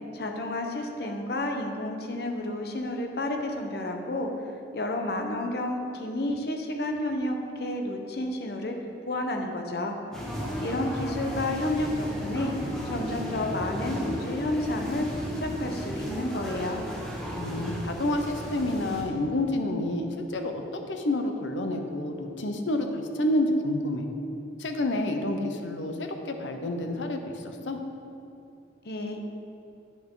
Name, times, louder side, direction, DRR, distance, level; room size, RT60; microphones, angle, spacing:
voice 1, 0.1-4.3 4.7-8.7 9.1-10.0 10.6-16.8 28.8-29.2, left 1 dB, 60° left, 3 dB, 0.8 m, -31 dB
sound 1, 10.1-19.0, equal, 5° left, 1.2 m, -34 dB
voice 2, 17.3-20.6 20.9-24.1 24.6-27.8, left 1 dB, 90° left, 5 dB, 0.8 m, -29 dB
9.7 x 5.8 x 3.8 m, 2.6 s
head